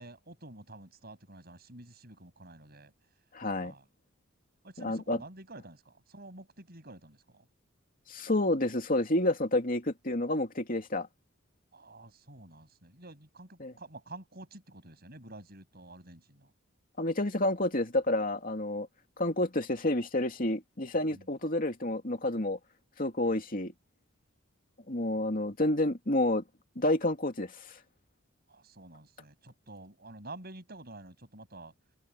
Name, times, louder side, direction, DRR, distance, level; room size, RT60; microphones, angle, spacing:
voice 1, 0.0-2.9 3.6-3.8 4.6-7.4 11.7-16.5 21.1-21.3 28.5-31.7, right 2 dB, 50° right, 7.7 m, -49 dB
voice 2, 3.3-3.7 4.8-5.2 8.1-11.1 13.6-13.7 17.0-18.9 19.2-22.6 23.0-23.7 24.9-26.4 26.8-27.6, left 1 dB, 45° left, 2.7 m, -29 dB
head